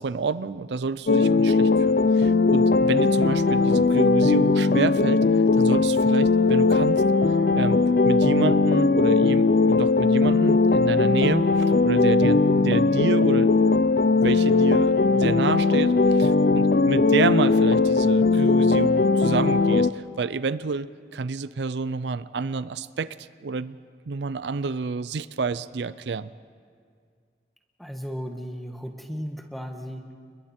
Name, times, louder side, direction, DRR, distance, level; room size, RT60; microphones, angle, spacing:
voice 1, 0.0-5.2 5.6-7.0 7.5-7.8 8.0-13.5 14.1-20.9 21.1-23.8 24.1-26.3, right 4 dB, 80° right, 16 dB, 0.5 m, -29 dB
sound 1, 1.1-19.9, left 3 dB, 55° left, 0.5 m, -19 dB
voice 2, 27.8-30.1, equal, ahead, 4 dB, 1.4 m, -35 dB
30.0 x 22.0 x 4.4 m, 2.1 s
head